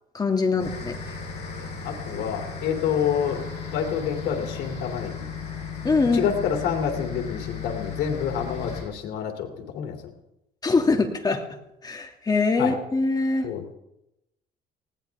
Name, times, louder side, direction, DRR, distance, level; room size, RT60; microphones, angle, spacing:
voice 1, 0.1-0.9 5.8-6.2 10.6-11.4 11.8-13.5, left 3 dB, 25° left, 4 dB, 2.2 m, -23 dB
sound 1, 0.6-8.8, left 5 dB, 40° left, 6.6 m, -35 dB
voice 2, 1.5-3.4 3.7-5.2 6.1-10.0 12.6-12.8 13.4-13.7, left 8 dB, 80° left, 3 dB, 2.8 m, -28 dB
19.5 x 17.0 x 3.5 m, 0.86 s
cardioid pair, 110°, 17 cm